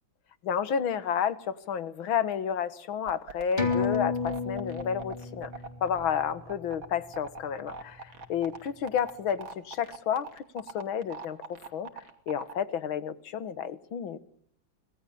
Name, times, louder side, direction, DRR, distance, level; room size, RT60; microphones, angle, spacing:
voice 1, 0.4-5.5 5.8-11.9 12.3-14.2, left 8 dB, 90° left, 15 dB, 2.1 m, -31 dB
sound 1, 3.1-12.5, right 4 dB, 85° right, 3.4 m, -41 dB
sound 2, 3.6-8.5 8.9-9.0, left 4 dB, 20° left, 3.9 m, -34 dB
25.5 x 19.0 x 8.7 m, 0.67 s
omnidirectional pair, 2.1 m